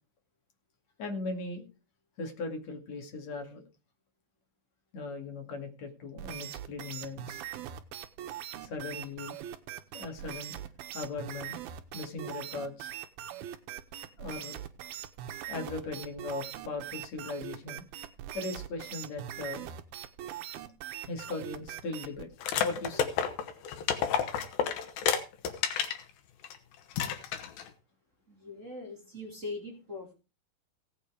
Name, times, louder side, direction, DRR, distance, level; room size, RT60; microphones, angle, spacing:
voice 1, 1.0-1.6 2.2-3.6 4.9-7.4 8.6-9.3 9.9-10.6 10.9-11.6 11.9-12.9 14.2-14.6 15.5-17.8 18.3-19.6 21.1-23.1, left 3 dB, 50° left, 4 dB, 3.2 m, -38 dB
sound 1, 6.2-22.3, right 11 dB, 85° right, 2.8 m, -41 dB
sound 2, 22.4-26.0 26.4-26.6 26.9-27.7, left 8 dB, 75° left, 3.1 m, -30 dB
voice 2, 28.3-30.1, left 2 dB, 20° right, -1 dB, 3.2 m, -41 dB
17.0 x 7.2 x 4.9 m, 0.32 s
omnidirectional pair, 4.3 m